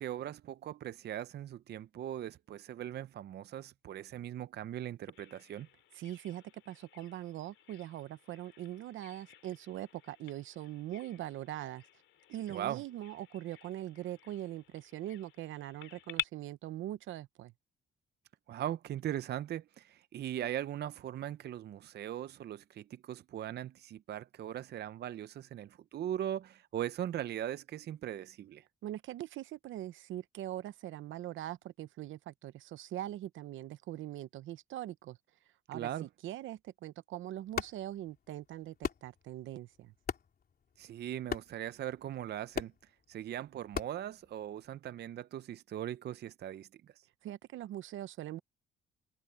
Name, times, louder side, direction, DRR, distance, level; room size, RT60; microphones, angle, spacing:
voice 1, 0.0-5.7 12.5-12.8 18.5-28.7 35.7-36.1 40.8-47.1, right 11 dB, 55° right, 0.5 m, -40 dB
Bird vocalization bird call bird song, 5.1-16.2, left 14 dB, 80° left, 2.9 m, -49 dB
voice 2, 5.9-11.8 12.3-17.5 28.8-35.2 35.7-39.9 47.2-48.4, right 13 dB, 80° right, 0.9 m, -42 dB
sound 1, 37.4-44.8, left 7 dB, 50° left, 3.6 m, -43 dB
cardioid pair, 90°, 20 cm